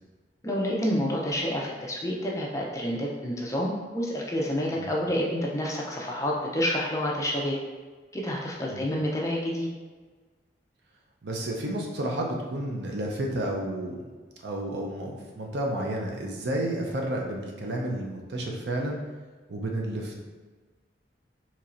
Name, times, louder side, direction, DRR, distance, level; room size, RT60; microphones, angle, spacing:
voice 1, 0.4-7.6 8.1-9.7, equal, 20° left, -2 dB, 0.5 m, -28 dB
voice 2, 11.2-14.0 14.4-19.0 19.5-20.2, right 1 dB, 80° right, 0 dB, 0.6 m, -31 dB
4.2 x 2.9 x 2.5 m, 1.4 s
head